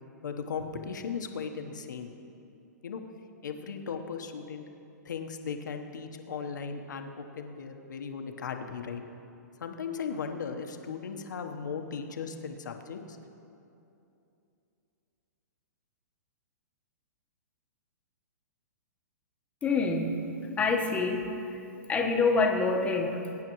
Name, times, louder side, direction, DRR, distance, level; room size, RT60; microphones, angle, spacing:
voice 1, 0.2-2.1 2.8-3.0 3.4-4.7 5.0-9.0 9.6-13.2, left 6 dB, 80° left, 5 dB, 1.1 m, -37 dB
voice 2, 19.6-20.2 20.6-21.6 21.9-23.2, left 4 dB, 15° left, 1 dB, 1.2 m, -26 dB
21.5 x 9.8 x 3.1 m, 2.8 s
hypercardioid pair, 140°, 10 cm